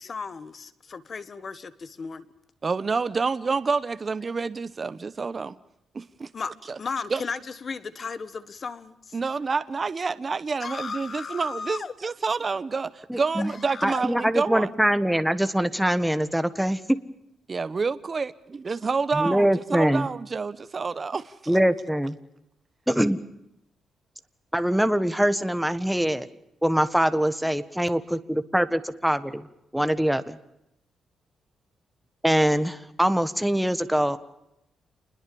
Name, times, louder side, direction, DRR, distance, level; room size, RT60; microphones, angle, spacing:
voice 1, 0.0-2.3 6.3-9.2 10.6-11.9 13.4-14.0, left 5 dB, 40° left, 14 dB, 1.5 m, -35 dB
voice 2, 2.6-5.5 5.9-6.3 6.7-6.8 7.1-7.2 9.1-14.7 17.5-21.6, right 4 dB, 30° right, 14 dB, 1.0 m, -28 dB
voice 3, 13.1-13.5 13.8-17.0 19.1-20.1 21.5-22.2 22.9-23.2 24.5-26.3 26.6-29.4 29.7-30.4 32.2-34.2, equal, ahead, 11 dB, 1.5 m, -23 dB
28.5 x 21.5 x 7.0 m, 0.83 s
cardioid pair, 120°, 0 cm